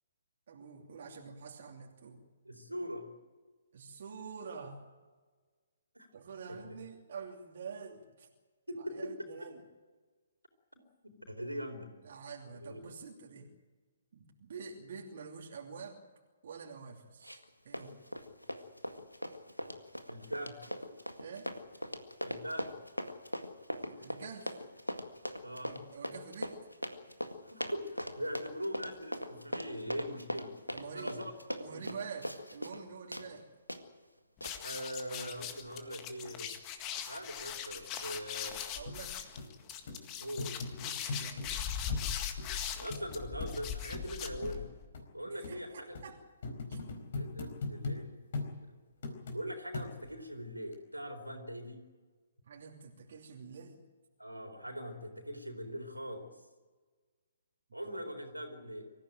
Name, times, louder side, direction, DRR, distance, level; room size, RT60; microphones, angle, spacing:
voice 1, 0.5-2.2 3.7-4.8 6.1-8.3 8.7-9.6 12.0-13.5 14.1-16.0 16.4-18.0 21.2-21.5 23.7-24.6 25.6-26.6 30.7-31.2 31.6-33.5 38.7-39.3 40.8-41.5 45.2-46.2 46.7-46.8 52.4-53.8, right 5 dB, 50° right, 0 dB, 2.8 m, -47 dB
voice 2, 2.4-3.1 5.9-6.1 8.7-9.1 10.7-11.9 12.6-12.8 20.1-20.6 22.2-22.7 25.4-25.7 27.4-30.5 30.9-31.3 31.7-31.8 34.6-36.5 37.1-38.6 40.2-40.5 42.8-44.7 45.1-46.0 47.1-48.1 49.3-51.8 54.2-56.3 57.7-58.9, equal, 85° right, 4 dB, 4.2 m, -41 dB
Run, 17.2-17.5 17.7-32.8 33.1-33.3 33.7-33.8 34.4-34.5, equal, 90° left, 1.9 m, -40 dB
sound 1, 34.4-44.8, left 8 dB, 25° left, 1.8 m, -40 dB
sound 2, 38.9-39.0 39.4-39.5 39.9-40.0 40.4-41.5 41.9-42.1 42.4-42.5 42.9-43.0 43.4-43.5 43.9-44.1 44.4-44.6 44.9-45.1 45.4-45.6 46.0-46.1 46.4-48.0 48.3-48.5 49.0-49.4 49.7-50.2 50.7-50.8, left 3 dB, 50° left, 4.4 m, -39 dB
25.0 x 15.0 x 9.0 m, 1.4 s
figure-of-eight pair, 130°, 0 cm